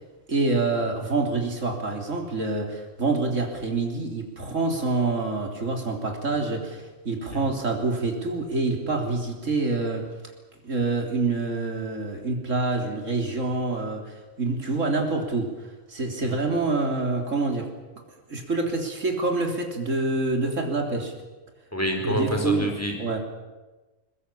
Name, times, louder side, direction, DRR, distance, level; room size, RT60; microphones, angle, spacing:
voice 1, 0.3-10.1 10.6-17.7 18.3-21.1 22.0-22.7 23.0-23.2, right 3 dB, 60° right, 2 dB, 3.7 m, -26 dB
voice 2, 21.7-23.0, equal, 10° left, 2 dB, 4.7 m, -28 dB
21.5 x 21.0 x 8.6 m, 1.2 s
omnidirectional pair, 1.5 m